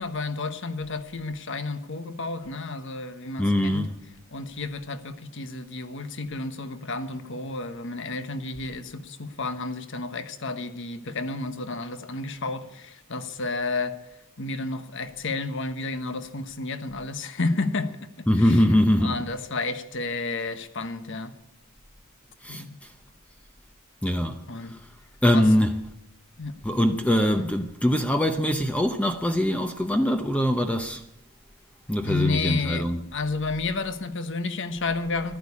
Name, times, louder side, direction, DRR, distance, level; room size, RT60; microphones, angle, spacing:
voice 1, 0.0-3.9 4.3-14.0 14.4-21.3 22.5-22.8 24.5-24.8 25.3-25.5 26.4-26.6 32.0-35.4, left 3 dB, 55° left, 1.2 m, -31 dB
voice 2, 3.4-3.9 18.3-19.2 22.4-22.6 24.0-24.8 25.2-25.8 26.6-31.0 31.9-33.0, equal, 5° left, 0.7 m, -23 dB
14.0 x 12.0 x 8.5 m
head